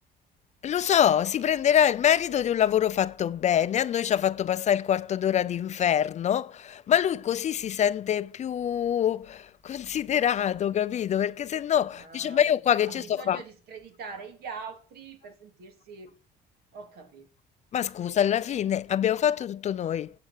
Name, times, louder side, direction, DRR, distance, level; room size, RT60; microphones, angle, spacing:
voice 1, 0.6-13.4 17.7-20.1, left 9 dB, 45° left, 0.5 m, -25 dB
voice 2, 11.9-12.4 12.8-16.2 16.7-17.3, right 5 dB, 70° right, 2.3 m, -43 dB
9.1 x 7.6 x 6.6 m
cardioid pair, 110°, 17 cm